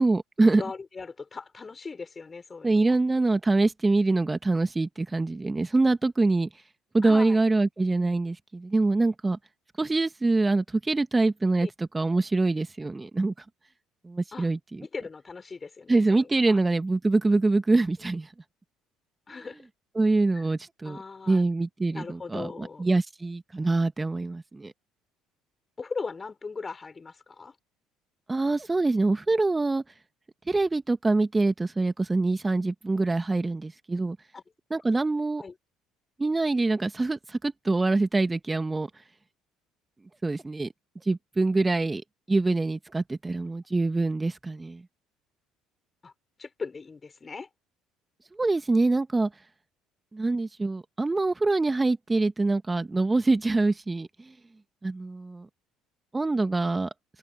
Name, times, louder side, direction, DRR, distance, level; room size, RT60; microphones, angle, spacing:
voice 1, 0.0-0.6 2.6-6.6 6.9-9.4 9.8-13.4 14.0-14.8 15.9-18.3 20.0-21.0 21.3-24.7 28.3-29.8 30.5-34.2 34.7-35.4 36.2-39.0 40.2-40.7 41.0-42.0 42.3-44.8 48.3-49.3 50.1-54.3 54.8-55.5 56.1-56.9, right 3 dB, 20° right, 1.4 m, -25 dB
voice 2, 0.6-3.0 7.0-7.4 11.6-11.7 14.3-14.5 14.8-16.6 19.3-19.7 20.3-20.4 20.8-21.5 21.9-22.9 25.8-27.5 34.3-34.4 35.4-35.5 46.0-46.1 46.4-47.5, left 4 dB, 30° left, 6.2 m, -39 dB
open air
hypercardioid pair, 65°, 0 cm